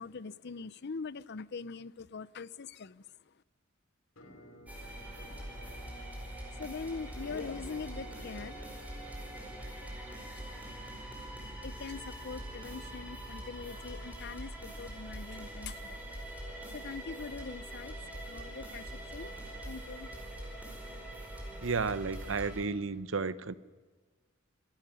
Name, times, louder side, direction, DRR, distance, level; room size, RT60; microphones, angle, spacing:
voice 1, 0.0-3.1 6.6-8.6 11.6-16.0 16.6-20.1, left 4 dB, 60° left, 18 dB, 0.6 m, -43 dB
Musical instrument, 4.2-13.9, left 1 dB, 90° left, 3.2 m, -56 dB
sound 1, 4.7-22.6, right 1 dB, 10° right, 5.0 m, -43 dB
voice 2, 21.6-23.5, right 4 dB, 80° right, 15 dB, 0.9 m, -32 dB
26.0 x 12.5 x 9.9 m, 1.4 s
head